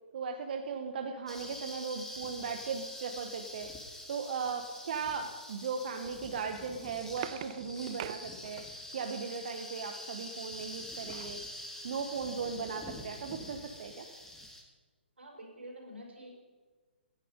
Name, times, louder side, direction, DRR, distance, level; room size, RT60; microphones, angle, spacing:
voice 1, 0.1-11.4 11.8-14.1, right 5 dB, 55° right, 5 dB, 1.3 m, -37 dB
sound 1, 1.3-14.6, left 1 dB, 5° left, 1.9 m, -46 dB
sound 2, 6.9-9.0 10.5-11.4 11.9-12.0 12.3-12.5, right 12 dB, 40° right, 0.6 m, -45 dB
voice 2, 15.2-16.4, equal, 90° right, 0 dB, 5.3 m, -48 dB
17.0 x 10.5 x 5.4 m, 1.3 s
hypercardioid pair, 135°, 6 cm